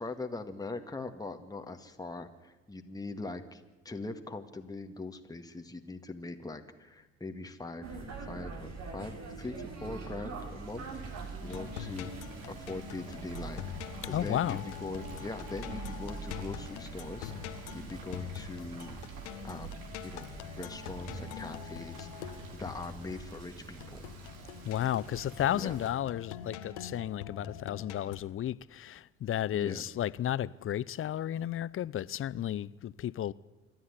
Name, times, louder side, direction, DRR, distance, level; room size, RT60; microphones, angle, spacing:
voice 1, 0.0-10.9 11.4-12.1 12.5-13.7 14.0-18.9 19.4-20.3 20.6-24.0 25.5-25.8 29.5-29.8, left 2 dB, 10° left, 1.9 m, -42 dB
sound 1, 7.8-25.9, right 4 dB, 50° right, 4.0 m, -44 dB
Frying (food), 9.2-25.9, right 5 dB, 70° right, 3.5 m, -55 dB
sound 2, 11.5-28.2, left 9 dB, 75° left, 1.7 m, -45 dB
voice 2, 14.0-14.7 24.6-33.3, left 11 dB, 40° left, 0.7 m, -33 dB
27.0 x 11.5 x 9.8 m
hypercardioid pair, 60°, 35 cm